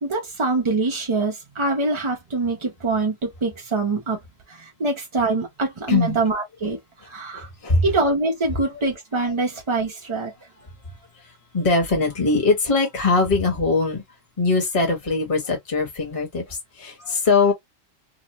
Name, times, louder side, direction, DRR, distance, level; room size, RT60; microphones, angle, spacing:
voice 1, 0.0-4.2 4.5-6.8 7.0-7.5 7.8-10.3, right 3 dB, 40° right, 0.4 m, -24 dB
voice 2, 5.9-6.2 7.3-7.8 9.2-9.3 11.5-14.0 14.4-17.5, left 3 dB, 30° left, 1.0 m, -21 dB
2.8 x 2.0 x 2.9 m
omnidirectional pair, 1.3 m